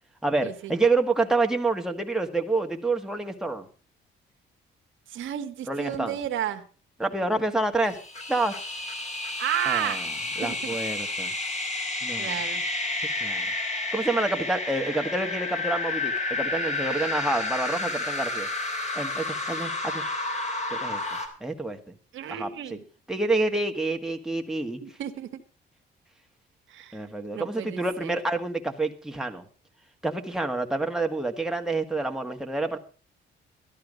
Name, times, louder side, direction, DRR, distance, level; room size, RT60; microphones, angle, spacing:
voice 1, 0.2-3.7 5.7-6.2 7.0-8.0 8.3-8.6 9.7-10.1 10.4-11.3 12.0-12.3 13.2-13.5 13.9-18.5 18.9-20.0 20.7-21.0 21.4-21.8 22.3-22.8 23.1-24.8 26.9-29.4 30.0-32.8, right 2 dB, 5° right, 3 dB, 1.6 m, -28 dB
voice 2, 5.1-6.6 9.4-10.0 10.4-10.6 12.2-12.6 22.1-22.8 24.8-25.4 26.7-27.0 27.3-28.2, right 11 dB, 80° right, 7 dB, 1.4 m, -32 dB
sound 1, 7.8-21.3, left 2 dB, 35° left, 3.5 m, -31 dB
13.0 x 11.5 x 5.1 m, 0.37 s
cardioid pair, 90°, 20 cm